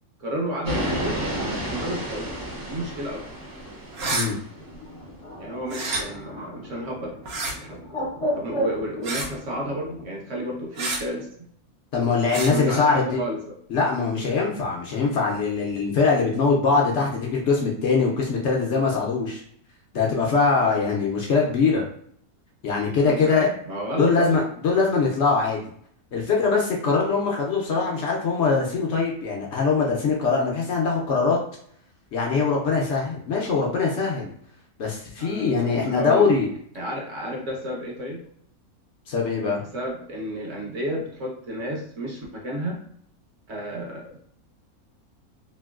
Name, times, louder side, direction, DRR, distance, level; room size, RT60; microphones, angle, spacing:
voice 1, 0.2-1.2 1.5-2.3 2.7-3.3 5.4-7.1 7.5-7.8 8.3-11.3 12.5-13.5 23.0-24.3 35.2-36.3 36.7-38.2 39.7-42.8 43.5-44.2, equal, 60° right, -2 dB, 1.1 m, -31 dB
sound 1, 0.6-4.7, right 1 dB, 35° right, 0.3 m, -31 dB
sound 2, 3.9-4.3 5.7-6.0 7.2-7.5 9.0-9.3 10.8-11.0 12.3-12.5, right 3 dB, 90° right, 1.2 m, -28 dB
Bird, 4.5-10.1, equal, 35° left, 0.5 m, -34 dB
voice 2, 11.9-13.2 13.7-19.4 19.9-21.9 22.6-23.5 24.0-25.6 26.1-31.4 32.1-34.3 34.8-36.5 39.1-39.6, left 4 dB, 65° left, -2 dB, 0.8 m, -22 dB
3.0 x 2.6 x 2.3 m, 0.64 s
omnidirectional pair, 1.5 m